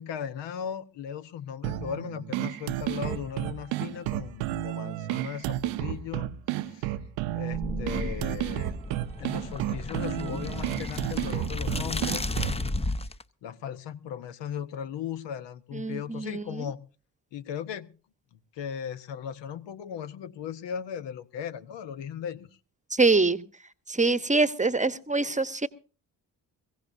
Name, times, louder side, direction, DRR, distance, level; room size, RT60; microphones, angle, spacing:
voice 1, 0.0-6.3 6.6-6.9 7.3-8.8 9.2-12.4 12.8-13.0 13.4-16.8 17.3-17.9 18.5-22.5, left 8 dB, 70° left, 12 dB, 1.0 m, -37 dB
sound 1, 1.6-12.6, right 14 dB, 80° right, 0.7 m, -32 dB
sound 2, 7.5-13.2, left 2 dB, 15° left, 0.8 m, -33 dB
voice 2, 15.7-16.6 22.9-23.4 23.9-25.7, right 3 dB, 15° right, 14 dB, 1.0 m, -24 dB
22.0 x 16.0 x 2.7 m, 0.36 s
hypercardioid pair, 45°, 45 cm